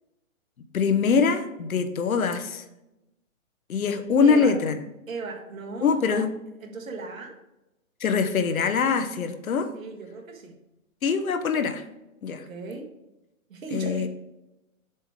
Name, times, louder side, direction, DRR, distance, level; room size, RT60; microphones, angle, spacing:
voice 1, 0.7-2.6 3.7-4.7 5.8-6.3 8.0-9.7 11.0-11.8 12.2-12.4 13.7-14.1, left 5 dB, 90° left, 9 dB, 1.0 m, -23 dB
voice 2, 4.2-4.6 5.1-6.2 6.6-7.4 9.7-10.6 12.3-12.9 13.5-14.1, right 3 dB, 75° right, 2 dB, 1.7 m, -36 dB
7.2 x 3.6 x 4.9 m, 0.93 s
hypercardioid pair, 170°, 41 cm